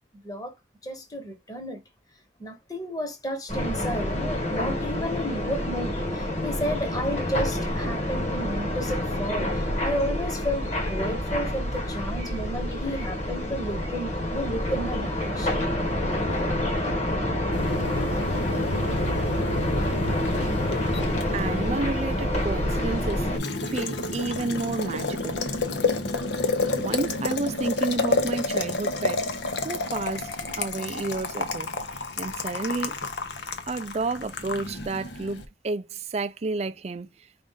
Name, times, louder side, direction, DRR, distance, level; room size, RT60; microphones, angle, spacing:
voice 1, 0.1-0.5 0.8-1.8 2.4-15.7 16.1-16.4, equal, 20° left, 1.2 m, -32 dB
sound 1, 3.5-23.4, left 1 dB, 40° left, 1.5 m, -28 dB
Boiling, 17.5-35.4, left 2 dB, 85° left, 0.9 m, -30 dB
voice 2, 21.3-23.3 23.6-25.4 26.8-29.3 29.6-30.3 30.6-33.0 33.7-37.3, right 3 dB, 35° right, 0.4 m, -31 dB
5.1 x 2.5 x 3.7 m
head